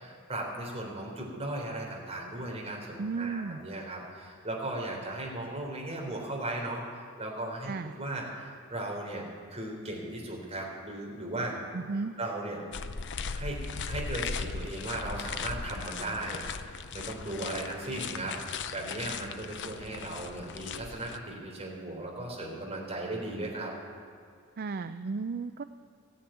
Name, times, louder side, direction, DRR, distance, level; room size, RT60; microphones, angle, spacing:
voice 1, 0.0-7.7 8.0-9.2 9.5-11.5 12.2-12.6 13.4-18.4 18.7-23.7, right 1 dB, 30° right, -2 dB, 4.0 m, -37 dB
voice 2, 3.0-3.6 7.6-7.9 11.7-12.1 24.6-25.6, right 4 dB, 45° right, 11 dB, 0.4 m, -34 dB
sound 1, 12.7-21.2, left 5 dB, 60° left, 0.7 m, -38 dB
15.0 x 10.5 x 9.2 m, 2.3 s
head